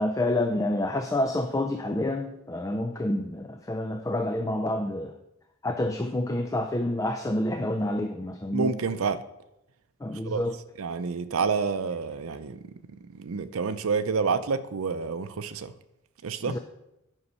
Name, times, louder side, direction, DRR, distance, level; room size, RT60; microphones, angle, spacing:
voice 1, 0.0-5.1 5.6-8.8 10.0-10.6 16.5-16.6, left 1 dB, 15° left, 6 dB, 0.4 m, -28 dB
voice 2, 8.5-9.2 10.3-10.4 10.8-12.6 13.1-15.7 16.2-16.6, right 5 dB, 90° right, 10 dB, 0.5 m, -28 dB
9.8 x 5.4 x 5.4 m, 0.88 s
head